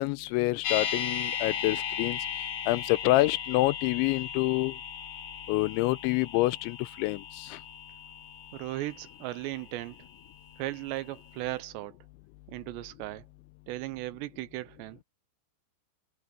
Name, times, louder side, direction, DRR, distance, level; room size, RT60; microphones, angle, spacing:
voice 1, 0.0-2.2 2.7-4.8 5.5-7.6, left 19 dB, 85° left, 3.0 m, -27 dB
sound 1, 0.6-10.7 11.0-11.1, left 8 dB, 70° left, 4.8 m, -37 dB
voice 2, 8.5-10.0 10.6-12.0 12.5-13.3 13.7-15.0, right 17 dB, 85° right, 2.8 m, -36 dB
omnidirectional pair, 5.2 m